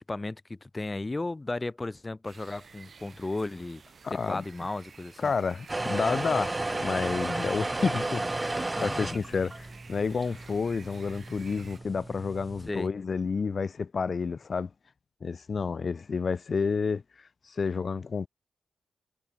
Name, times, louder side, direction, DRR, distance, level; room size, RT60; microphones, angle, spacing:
voice 1, 0.0-3.8 4.3-5.3 8.7-9.2 12.7-12.9, left 2 dB, 25° left, 1.2 m, -35 dB
sound 1, 2.2-11.8, right 5 dB, 55° right, 4.1 m, -51 dB
voice 2, 4.0-4.4 5.2-14.7 15.2-18.3, left 5 dB, 50° left, 0.6 m, -30 dB
sound 2, 5.7-12.7, right 2 dB, 20° right, 1.0 m, -33 dB
cardioid pair, 85°, 0 cm